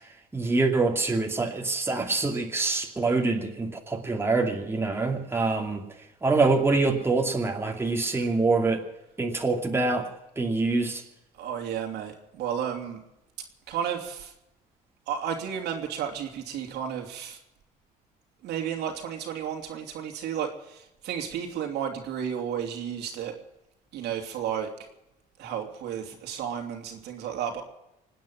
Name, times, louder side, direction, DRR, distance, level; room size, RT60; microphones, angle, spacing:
voice 1, 0.3-5.8 6.2-8.8 9.2-10.1 10.4-11.0, right 3 dB, 15° right, 2 dB, 2.6 m, -25 dB
voice 2, 11.4-13.0 13.7-14.3 15.1-17.4 18.4-23.3 23.9-24.7 25.4-27.6, right 8 dB, 80° right, 2 dB, 3.2 m, -32 dB
26.0 x 9.4 x 5.8 m, 0.89 s
cardioid pair, 110°, 17 cm